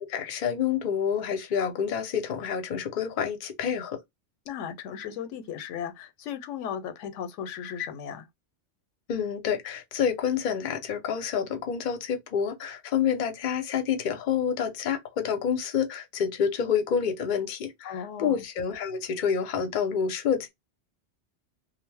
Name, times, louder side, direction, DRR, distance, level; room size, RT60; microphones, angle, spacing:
voice 1, 0.1-4.0 9.1-20.5, left 7 dB, 50° left, 0.6 m, -28 dB
voice 2, 4.5-8.2 17.8-18.4, left 8 dB, 85° left, 0.9 m, -36 dB
2.5 x 2.0 x 3.2 m
omnidirectional pair, 1.2 m